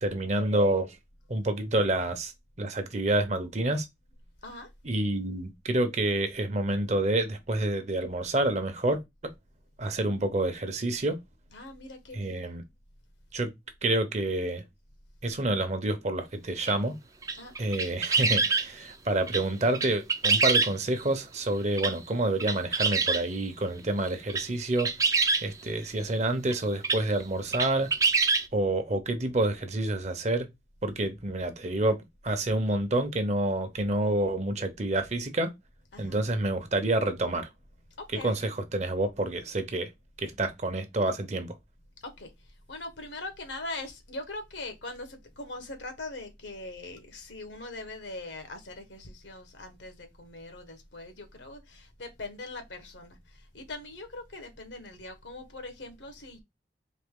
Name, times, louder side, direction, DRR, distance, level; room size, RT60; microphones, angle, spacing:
voice 1, 0.0-1.0 1.3-2.3 2.6-3.9 4.8-9.0 9.8-11.2 12.1-12.6 13.3-13.5 13.8-14.6 15.2-16.9 17.6-24.9 25.4-27.9 28.5-30.5 30.8-32.0 32.2-35.5 36.0-37.5 38.2-39.9 40.2-41.5, right 2 dB, 40° right, 0.8 m, -28 dB
voice 2, 11.5-12.4 17.4-17.5 35.9-36.1 38.0-38.4 42.0-42.3 42.7-56.4, left 2 dB, 85° left, 1.3 m, -41 dB
sound 1, 16.7-16.8 17.2-18.7 19.3-19.4 19.7-21.0 21.8-21.9 22.4-23.2 24.1-24.5 24.8-25.4 26.5-26.6 26.8-27.0 27.5-28.5, right 4 dB, 20° right, 0.4 m, -25 dB
4.1 x 3.2 x 3.7 m
head